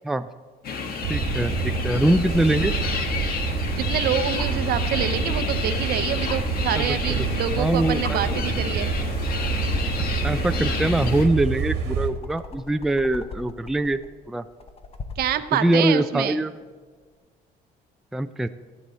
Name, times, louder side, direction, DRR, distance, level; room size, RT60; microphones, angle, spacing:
sound 1, 0.6-11.3, left 5 dB, 60° left, 1.4 m, -30 dB
sound 2, 1.0-12.1, right 4 dB, 85° right, 1.5 m, -27 dB
voice 1, 1.1-2.7 6.8-7.3 7.6-8.2 10.2-14.0 14.3-14.5 15.5-16.5 18.1-18.5, right 1 dB, ahead, 10 dB, 0.3 m, -23 dB
voice 2, 3.7-8.9 15.2-16.4, right 10 dB, 65° right, 12 dB, 0.7 m, -27 dB
sound 3, 4.3-4.6 6.2-6.4 7.5-7.6 8.0-8.2 9.1-9.3 9.7-15.4 17.0-17.1, left 4 dB, 35° left, 0.9 m, -39 dB
15.0 x 8.3 x 4.2 m, 1.5 s
cardioid pair, 110°, 17 cm